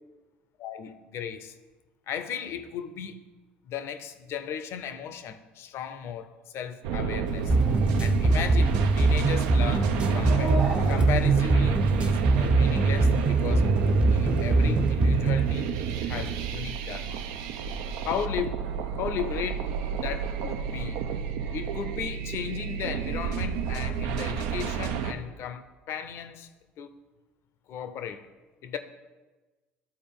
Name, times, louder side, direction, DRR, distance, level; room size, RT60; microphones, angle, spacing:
voice 1, 0.6-1.6 2.1-3.3 3.6-7.5 8.0-10.6 10.9-13.7 14.1-17.3 18.0-18.7 19.0-21.0 21.5-26.5 26.8-27.0 27.7-28.3 28.6-28.8, left 8 dB, 55° left, 0.6 m, -36 dB
sound 1, 6.8-25.1, right 7 dB, 70° right, 0.5 m, -30 dB
Chicken rooster, 7.2-12.4, right 1 dB, 85° right, 1.2 m, -38 dB
sound 2, 7.5-15.5, right 3 dB, 20° right, 0.6 m, -23 dB
12.0 x 4.2 x 3.6 m
hypercardioid pair, 65°, 5 cm